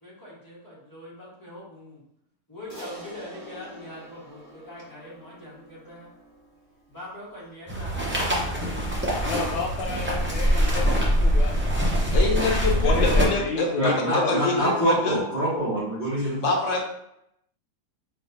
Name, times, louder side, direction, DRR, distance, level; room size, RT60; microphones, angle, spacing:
voice 1, 0.0-2.0 2.5-6.1 6.9-8.9, left 1 dB, 15° left, -8 dB, 1.4 m, -43 dB
Crash cymbal, 2.7-7.3, right 1 dB, 80° right, 1.5 m, -45 dB
sound 1, 7.7-13.2, equal, 15° right, 0.4 m, -23 dB
voice 2, 9.2-12.3 12.7-14.4, left 4 dB, 85° left, 0 dB, 1.2 m, -32 dB
voice 3, 12.1-15.2 16.4-16.8, left 3 dB, 60° left, -1 dB, 1.1 m, -25 dB
voice 4, 13.7-16.4, equal, 35° right, -10 dB, 1.4 m, -25 dB
4.1 x 3.3 x 2.7 m, 0.77 s
omnidirectional pair, 1.6 m